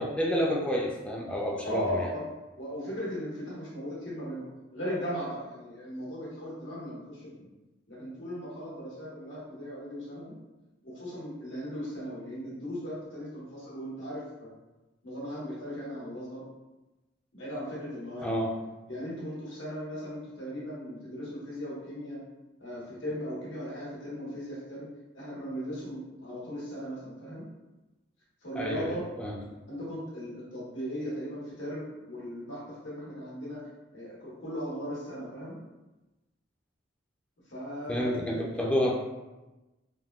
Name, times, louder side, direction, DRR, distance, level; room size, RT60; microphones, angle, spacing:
voice 1, 0.0-2.1 18.2-18.6 28.6-29.4 37.9-38.9, equal, 5° left, -2 dB, 0.3 m, -29 dB
voice 2, 1.5-2.2 2.5-7.5 7.9-10.3 10.8-14.5 15.0-16.5 17.3-18.3 18.9-22.2 22.6-24.9 25.1-27.4 28.4-29.1 29.7-33.7 33.9-35.6 37.5-38.2, equal, 90° left, -7 dB, 1.2 m, -37 dB
3.5 x 2.2 x 2.2 m, 1.1 s
head